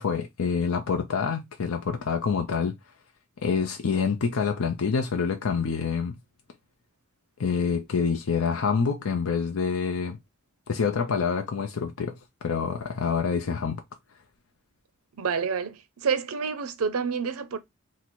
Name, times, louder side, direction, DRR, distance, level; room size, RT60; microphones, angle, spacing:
voice 1, 0.0-2.7 3.4-6.2 7.4-10.2 10.7-12.2 12.4-13.8, left 5 dB, 80° left, 0.6 m, -26 dB
voice 2, 15.2-17.6, right 6 dB, 85° right, 0.5 m, -28 dB
3.8 x 2.1 x 4.4 m
head